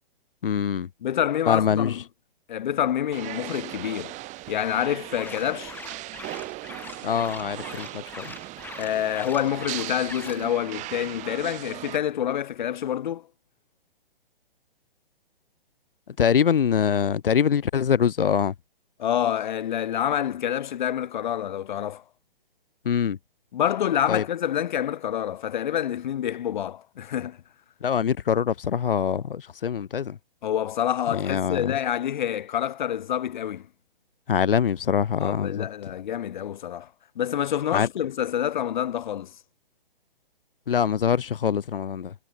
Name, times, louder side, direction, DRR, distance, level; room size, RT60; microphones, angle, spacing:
voice 1, 0.4-0.9 1.5-2.0 7.0-8.3 16.1-18.5 22.8-23.2 24.1-24.2 27.8-30.2 31.1-31.7 34.3-35.7 37.7-37.9 40.7-42.1, left 8 dB, 70° left, 1.3 m, -24 dB
voice 2, 1.0-2.0 2.5-4.2 4.5-5.7 8.8-13.3 19.0-22.0 23.5-27.4 30.4-33.7 35.2-36.9 37.2-39.3, left 10 dB, 55° left, 3.4 m, -27 dB
sound 1, 3.1-12.0, right 19 dB, 25° right, 5.4 m, -38 dB
sound 2, 5.1-10.4, left 4 dB, 5° left, 3.1 m, -42 dB
figure-of-eight pair, 135°, 29 cm